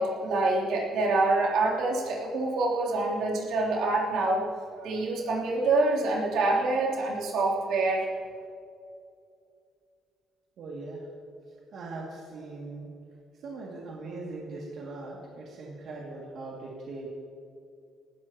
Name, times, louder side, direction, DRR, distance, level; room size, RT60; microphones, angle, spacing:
voice 1, 0.0-4.4 4.8-8.1, right 2 dB, 80° right, -4 dB, 3.5 m, -26 dB
voice 2, 10.6-11.1 11.7-12.9 13.4-17.1, right 3 dB, 60° right, -4 dB, 2.5 m, -40 dB
19.0 x 16.0 x 3.1 m, 2.4 s
cardioid pair, 125°, 0 cm